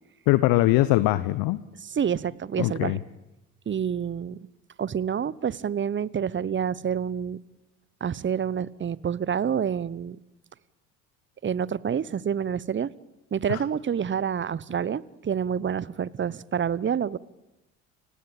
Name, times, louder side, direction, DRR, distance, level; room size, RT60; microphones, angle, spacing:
voice 1, 0.3-1.6 2.6-3.0 13.5-13.6, left 17 dB, 60° left, 16 dB, 1.1 m, -22 dB
voice 2, 1.8-3.0 3.7-4.4 4.8-7.4 8.0-10.2 11.4-12.9 13.3-17.2, right 8 dB, 30° right, 22 dB, 1.0 m, -28 dB
29.5 x 17.0 x 8.8 m, 0.97 s
hypercardioid pair, 60°, 39 cm